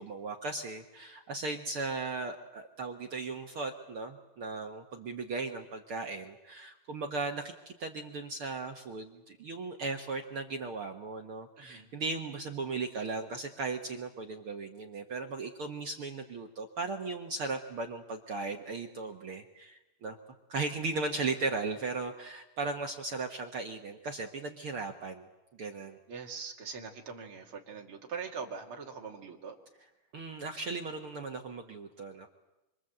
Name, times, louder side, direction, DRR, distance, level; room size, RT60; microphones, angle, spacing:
voice 1, 0.0-20.2 20.5-25.3 25.6-26.0 30.1-32.3, right 3 dB, 60° right, 3 dB, 1.5 m, -37 dB
voice 2, 11.6-11.9 26.1-29.6, right 5 dB, 40° right, 1 dB, 3.0 m, -42 dB
26.5 x 25.5 x 7.9 m, 0.98 s
omnidirectional pair, 4.4 m